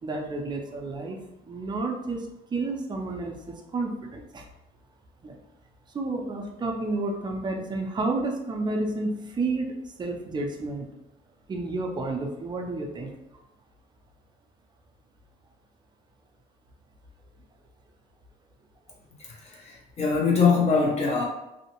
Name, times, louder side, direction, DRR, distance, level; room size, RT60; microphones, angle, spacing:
voice 1, 0.0-1.2 1.4-4.5 5.2-5.4 5.9-10.9 11.5-13.1, right 2 dB, 25° right, 2 dB, 0.5 m, -31 dB
voice 2, 19.2-21.2, left 5 dB, 40° left, -2 dB, 0.8 m, -23 dB
2.7 x 2.0 x 2.9 m, 0.92 s
cardioid pair, 110°, 17 cm